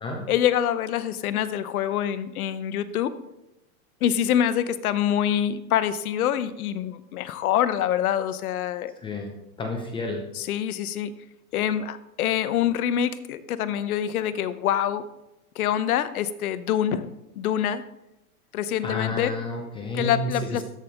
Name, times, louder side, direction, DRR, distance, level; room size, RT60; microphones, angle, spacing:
voice 1, 0.3-3.1 4.0-8.9 10.3-11.1 11.5-15.0 15.6-17.1 17.4-17.8 18.5-19.3 19.9-20.6, left 10 dB, 75° left, 14 dB, 0.8 m, -25 dB
voice 2, 9.6-10.2 18.8-20.6, left 2 dB, 10° left, 2 dB, 0.7 m, -30 dB
13.0 x 5.4 x 3.5 m, 0.91 s
supercardioid pair, 145°, 44 cm